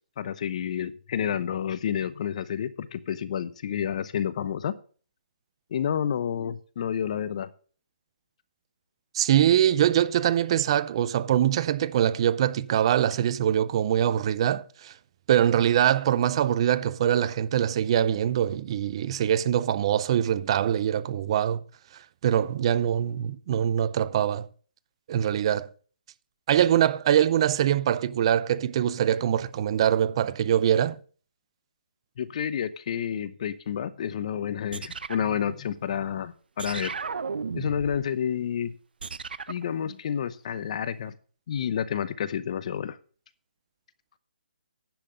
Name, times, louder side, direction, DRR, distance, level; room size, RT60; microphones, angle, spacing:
voice 1, 0.2-4.7 5.7-7.5 32.2-36.9 37.5-38.7 39.5-41.1 41.5-43.0, left 8 dB, 40° left, 0.8 m, -30 dB
voice 2, 9.1-14.9 15.3-21.6 22.2-24.5 25.1-25.7 26.5-31.0, right 10 dB, 35° right, 0.5 m, -23 dB
sound 1, 34.7-36.1 36.6-38.1 39.0-39.7, right 5 dB, 75° right, 0.6 m, -35 dB
10.5 x 5.8 x 6.5 m
hypercardioid pair, 160°, 5 cm